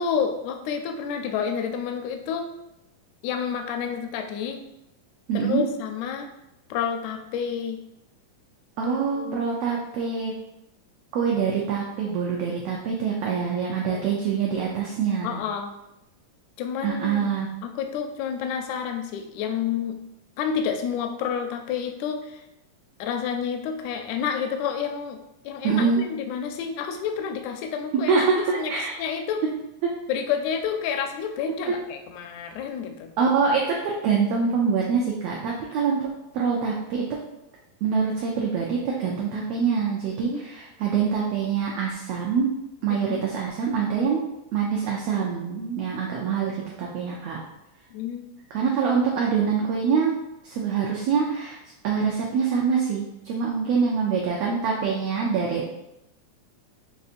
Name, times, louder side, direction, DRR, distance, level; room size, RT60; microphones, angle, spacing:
voice 1, 0.0-2.5 3.2-4.6 5.3-6.3 6.7-7.8 8.8-9.4 13.9-14.1 15.2-15.7 16.6-17.3 17.6-19.9 20.4-22.4 23.0-25.2 25.4-28.3 28.6-28.7 29.0-29.4 30.1-33.1 40.2-40.4 42.9-43.2 47.9-48.3, left 7 dB, 80° left, 5 dB, 1.7 m, -29 dB
voice 2, 5.3-5.7 8.8-10.3 11.1-15.4 16.8-17.5 25.6-26.0 28.1-28.9 33.2-37.0 37.8-42.5 42.8-44.2 44.5-46.5 46.8-47.4 48.5-50.2 50.4-51.6 51.8-55.6, right 6 dB, 85° right, -2 dB, 1.4 m, -25 dB
6.6 x 2.7 x 2.5 m, 0.88 s
omnidirectional pair, 3.5 m